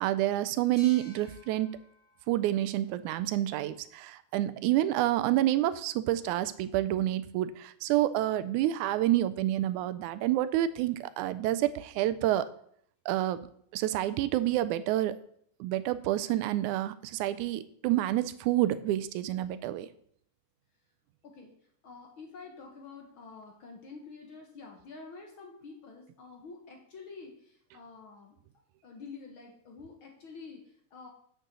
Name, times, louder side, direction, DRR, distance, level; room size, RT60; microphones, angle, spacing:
voice 1, 0.0-1.7 2.3-12.5 13.1-13.5 13.7-15.1 15.6-19.9, right 14 dB, 80° right, 14 dB, 2.0 m, -28 dB
sound 1, 0.8-4.1, left 1 dB, 5° left, 2.2 m, -56 dB
voice 2, 21.8-28.4 28.8-31.1, left 4 dB, 55° left, 2 dB, 1.6 m, -48 dB
7.6 x 6.3 x 6.7 m, 0.66 s
omnidirectional pair, 3.6 m